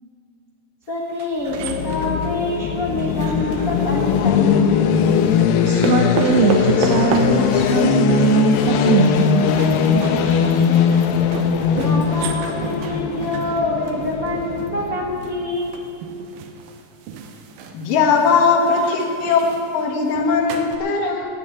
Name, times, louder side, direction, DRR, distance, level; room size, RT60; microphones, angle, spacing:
voice 1, 0.9-4.9 10.2-11.0 11.7-15.8, left 2 dB, 50° left, -3 dB, 1.0 m, -26 dB
sound 1, 1.1-4.3 5.0-20.8, right 5 dB, 90° right, 2.8 m, -32 dB
sound 2, 1.5-15.4, left 7 dB, 90° left, 2.5 m, -20 dB
voice 2, 5.7-9.6 9.9-10.1, right 4 dB, 70° right, 3 dB, 1.6 m, -19 dB
voice 3, 17.7-19.4 19.7-21.3, left 5 dB, 75° left, 2 dB, 2.9 m, -19 dB
18.0 x 7.7 x 8.5 m, 2.6 s
omnidirectional pair, 4.0 m